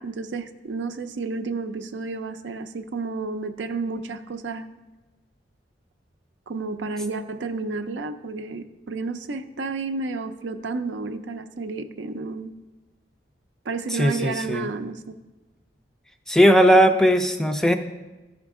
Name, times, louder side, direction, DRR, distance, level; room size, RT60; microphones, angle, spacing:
voice 1, 0.0-4.7 6.5-12.5 13.7-15.0, right 3 dB, 85° right, 8 dB, 0.5 m, -31 dB
voice 2, 13.9-14.7 16.3-17.7, equal, 5° left, 6 dB, 0.3 m, -18 dB
13.0 x 5.1 x 3.6 m, 1.2 s
head